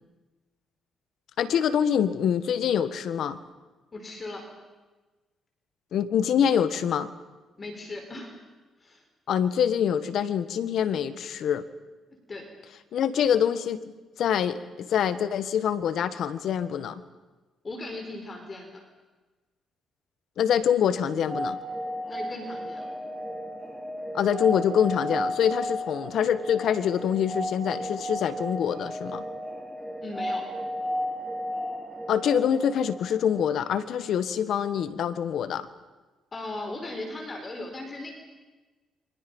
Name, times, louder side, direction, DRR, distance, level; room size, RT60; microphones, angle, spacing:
voice 1, 1.4-3.4 5.9-7.1 9.3-11.6 12.9-17.0 20.4-21.6 24.1-29.2 32.1-35.7, left 8 dB, 70° left, 12 dB, 1.6 m, -25 dB
voice 2, 3.9-4.5 7.6-8.4 8.8-9.0 12.3-12.5 17.6-18.8 22.1-22.9 30.0-30.5 36.3-38.1, left 2 dB, 35° left, 4 dB, 4.5 m, -37 dB
sound 1, 20.9-33.6, equal, ahead, 4.0 m, -34 dB
29.0 x 25.0 x 5.5 m, 1.2 s
cardioid pair, 90°, 0 cm